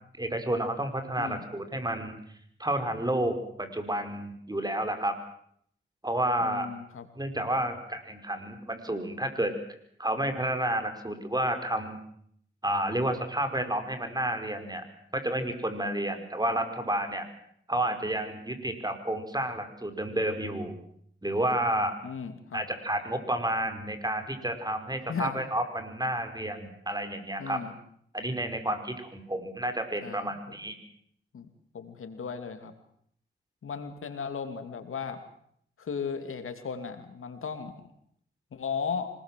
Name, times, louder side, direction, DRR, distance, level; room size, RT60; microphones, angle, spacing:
voice 1, 0.2-2.2 2.6-5.2 6.0-6.7 7.1-9.5 10.0-12.0 12.6-14.8 15.1-17.3 17.7-20.8 21.2-21.9 22.5-27.6 28.1-30.8, right 1 dB, 20° right, 7 dB, 5.2 m, -30 dB
voice 2, 6.4-7.1 22.0-22.6 25.1-25.4 27.4-27.7 30.0-30.3 31.3-31.5 31.7-32.7 33.6-35.2 35.8-37.9 38.5-39.1, left 6 dB, 85° left, 8 dB, 2.8 m, -36 dB
25.5 x 20.5 x 7.6 m, 0.66 s
cardioid pair, 55°, 21 cm